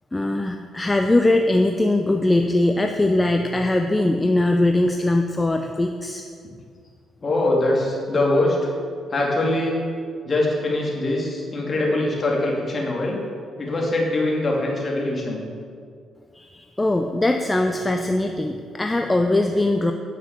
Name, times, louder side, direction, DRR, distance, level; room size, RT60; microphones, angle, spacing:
voice 1, 0.1-6.2 16.3-19.9, left 2 dB, 15° left, 5 dB, 0.5 m, -21 dB
voice 2, 7.2-8.7 9.1-9.8 10.2-13.2 13.6-15.5, left 2 dB, 40° left, -2 dB, 2.6 m, -22 dB
9.5 x 6.0 x 7.4 m, 2.2 s
cardioid pair, 90°, 0 cm